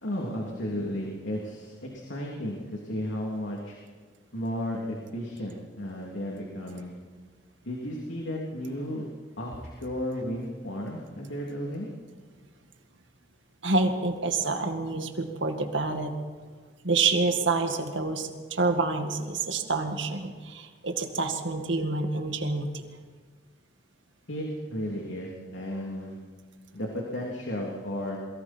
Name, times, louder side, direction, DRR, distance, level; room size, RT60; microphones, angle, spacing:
voice 1, 0.0-3.8 4.3-6.9 7.6-9.1 9.4-11.9 24.3-26.2 26.7-28.2, equal, 85° left, -2 dB, 3.2 m, -34 dB
voice 2, 13.6-16.1 16.8-22.8, right 3 dB, 85° right, 5 dB, 2.1 m, -27 dB
29.0 x 22.0 x 4.5 m, 1.5 s
head